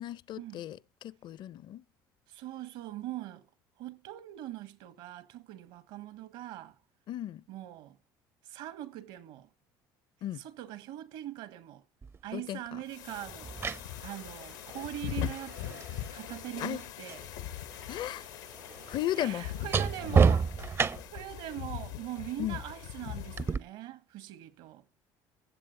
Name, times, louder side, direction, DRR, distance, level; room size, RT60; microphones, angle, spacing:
voice 1, 0.0-1.8 7.1-7.4 10.2-10.4 12.3-12.8 16.6-16.8 17.9-18.3 18.9-19.5 22.4-22.6, left 13 dB, 55° left, 0.6 m, -35 dB
voice 2, 2.3-3.4 3.8-6.8 7.5-8.0 8.4-9.5 10.4-11.8 12.2-13.5 14.0-17.3 17.9-18.0 19.2-20.5 21.1-24.8, right 13 dB, 75° right, 1.6 m, -42 dB
sound 1, 12.0-12.2 13.3-17.3 17.6-21.3 23.4-23.6, right 5 dB, 25° right, 0.5 m, -31 dB
sound 2, 12.9-23.6, left 11 dB, 90° left, 1.2 m, -41 dB
15.0 x 7.6 x 6.6 m
supercardioid pair, 95°, 9 cm